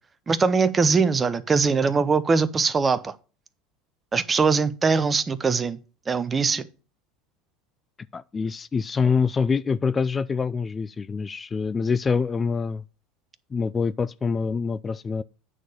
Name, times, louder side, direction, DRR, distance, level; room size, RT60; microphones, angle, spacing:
voice 1, 0.3-3.1 4.1-5.8 6.1-6.6, right 4 dB, 25° right, 0.8 m, -22 dB
voice 2, 8.1-12.8 13.5-15.2, left 5 dB, 25° left, 0.3 m, -25 dB
9.2 x 4.2 x 6.5 m
hypercardioid pair, 85°, 0 cm